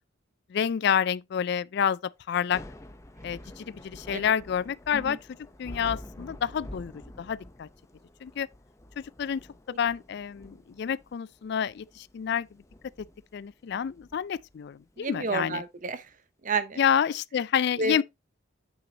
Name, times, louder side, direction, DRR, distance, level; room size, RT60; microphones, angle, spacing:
voice 1, 0.5-2.6 3.2-5.2 5.6-6.9 7.2-7.7 8.2-8.5 9.0-9.4 9.7-12.5 13.3-15.6 16.8-18.0, left 8 dB, 60° left, 0.3 m, -28 dB
Thunder / Rain, 2.4-15.5, left 1 dB, 15° left, 0.8 m, -48 dB
voice 2, 15.0-16.1 16.4-16.8 17.8-18.0, right 3 dB, 40° right, 0.8 m, -30 dB
8.6 x 6.2 x 2.8 m
head